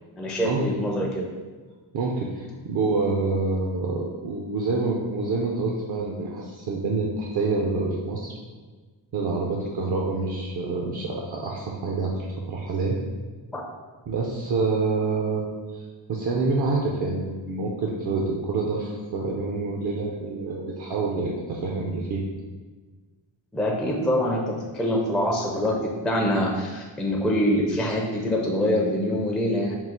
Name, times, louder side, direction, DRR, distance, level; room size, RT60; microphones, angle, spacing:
voice 1, 0.2-1.3 13.5-13.6 23.5-29.8, equal, ahead, -2 dB, 0.4 m, -25 dB
voice 2, 1.9-8.3 9.1-13.0 14.1-15.5 15.7-22.2, right 3 dB, 60° right, -2 dB, 0.6 m, -27 dB
3.7 x 2.3 x 4.3 m, 1.4 s
wide cardioid pair, 125°, 44 cm